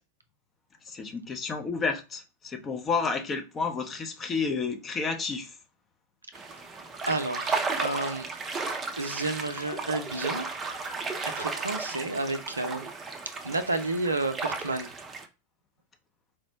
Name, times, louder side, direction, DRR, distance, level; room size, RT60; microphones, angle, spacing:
voice 1, 0.8-5.5, left 4 dB, 20° left, 0.6 m, -31 dB
sound 1, 6.3-15.3, right 4 dB, 20° right, 0.5 m, -34 dB
voice 2, 7.1-8.3 9.0-10.5 11.3-12.9 13.4-14.9, right 2 dB, 80° right, 0.4 m, -31 dB
4.4 x 2.0 x 2.8 m
figure-of-eight pair, 90°, 0 cm